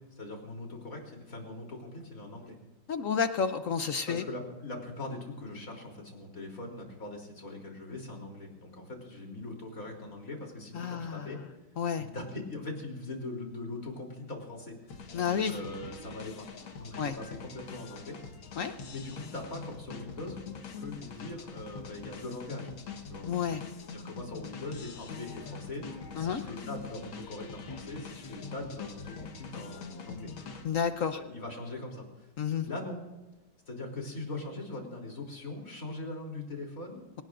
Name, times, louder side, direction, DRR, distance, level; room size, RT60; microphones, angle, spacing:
voice 1, 0.0-2.6 4.1-11.4 12.0-15.0 15.3-16.5 16.8-18.2 18.9-22.7 23.1-23.3 23.9-30.3 31.0-32.3 32.6-33.0 33.7-37.1, left 2 dB, 40° left, 0 dB, 3.8 m, -41 dB
voice 2, 2.9-4.2 10.7-11.3 11.8-12.1 15.1-15.5 17.0-17.1 18.6-18.7 23.3-23.6 26.2-26.4 30.6-31.2 32.4-32.6, left 7 dB, 60° left, 9 dB, 0.8 m, -30 dB
sound 1, 14.9-31.0, left 5 dB, 75° left, 2.2 m, -44 dB
27.0 x 18.5 x 2.6 m, 1.1 s
omnidirectional pair, 2.2 m